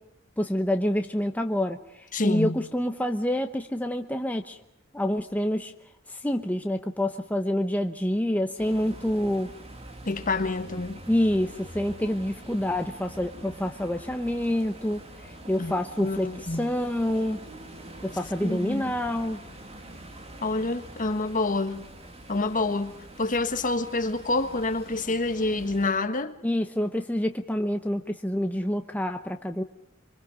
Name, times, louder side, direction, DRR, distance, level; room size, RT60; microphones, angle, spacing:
voice 1, 0.4-4.6 4.9-5.7 6.1-9.5 11.1-17.4 18.0-19.4 26.4-29.6, left 1 dB, 10° left, 0.9 m, -27 dB
voice 2, 2.1-2.6 10.0-11.0 15.6-15.7 16.0-16.7 18.4-18.9 20.4-21.9 22.3-26.3, left 2 dB, 40° left, 1.5 m, -27 dB
sound 1, 8.6-25.9, right 1 dB, 30° right, 2.8 m, -45 dB
26.0 x 24.0 x 5.3 m
head